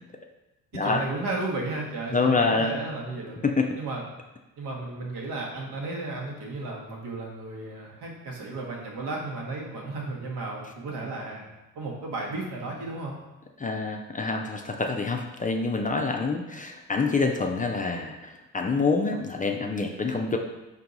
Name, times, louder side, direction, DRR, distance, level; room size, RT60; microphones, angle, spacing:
voice 1, 0.7-3.4 3.8-4.1 4.6-11.4 11.7-13.2, right 2 dB, 75° right, -2 dB, 1.3 m, -34 dB
voice 2, 2.1-2.8 3.4-3.7 13.6-20.4, left 4 dB, 20° left, 2 dB, 0.4 m, -26 dB
4.5 x 2.7 x 3.9 m, 1.0 s
supercardioid pair, 60°, 40 cm